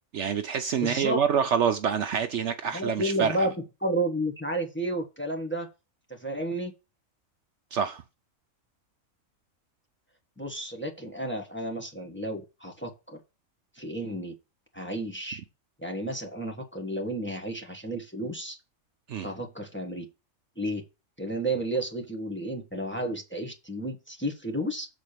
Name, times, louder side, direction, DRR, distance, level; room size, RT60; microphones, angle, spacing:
voice 1, 0.1-3.5 7.7-8.0 19.1-19.3, right 7 dB, 65° right, 0.9 m, -26 dB
voice 2, 0.8-1.2 2.7-3.5 3.8-5.7 6.1-6.7 10.4-13.2 13.8-14.3 14.7-15.4 15.8-18.6 19.2-20.0 20.6-20.8 21.2-24.9, right 1 dB, 10° left, 1.3 m, -32 dB
7.2 x 4.2 x 6.7 m
omnidirectional pair, 1.4 m